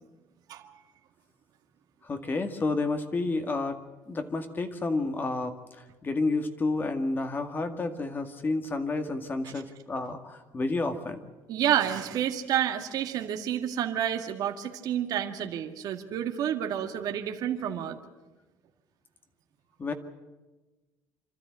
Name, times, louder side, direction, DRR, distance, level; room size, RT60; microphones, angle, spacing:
voice 1, 2.0-3.8 4.1-11.2 19.8-19.9, left 3 dB, 30° left, 7 dB, 2.0 m, -30 dB
voice 2, 11.5-18.0, right 10 dB, 65° right, 5 dB, 1.9 m, -29 dB
26.0 x 13.5 x 9.8 m, 1.2 s
cardioid pair, 115°, 7 cm